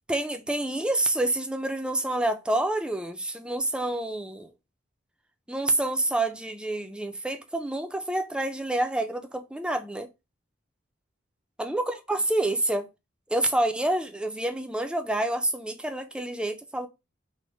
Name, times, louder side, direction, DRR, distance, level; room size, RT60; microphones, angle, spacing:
voice 1, 0.1-4.5 5.5-10.1 11.6-12.9 13.3-16.9, right 1 dB, 5° right, 0.4 m, -28 dB
4.4 x 2.1 x 3.1 m
head